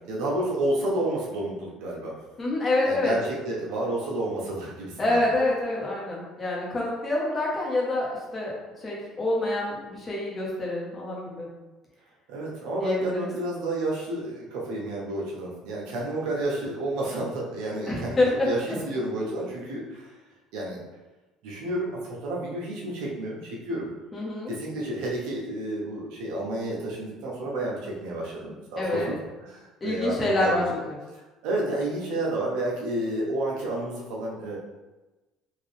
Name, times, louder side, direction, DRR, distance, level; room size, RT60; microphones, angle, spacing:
voice 1, 0.0-2.2 2.8-5.2 12.3-20.1 20.5-20.8 21.4-23.9 24.5-29.2 29.4-30.6 31.1-34.6, right 1 dB, 80° right, -4 dB, 1.0 m, -30 dB
voice 2, 2.4-3.2 5.0-11.5 12.8-13.3 17.9-18.5 24.1-24.5 28.8-29.1 29.8-31.0, left 2 dB, 25° left, -4 dB, 1.2 m, -27 dB
3.8 x 2.7 x 3.3 m, 1.2 s
cardioid pair, 115°, 0 cm